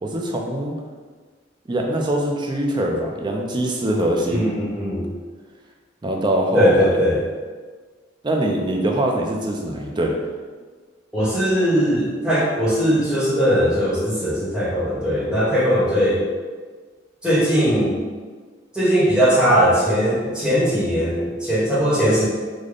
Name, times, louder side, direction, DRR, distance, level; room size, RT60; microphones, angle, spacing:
voice 1, 0.0-0.8 1.7-4.5 6.0-6.9 8.2-10.1, right 1 dB, 25° right, 1 dB, 0.4 m, -22 dB
voice 2, 4.3-5.1 6.5-7.2 11.1-16.2 17.2-18.0 18.7-22.3, equal, 5° right, -9 dB, 1.0 m, -19 dB
3.2 x 2.1 x 3.8 m, 1.5 s
head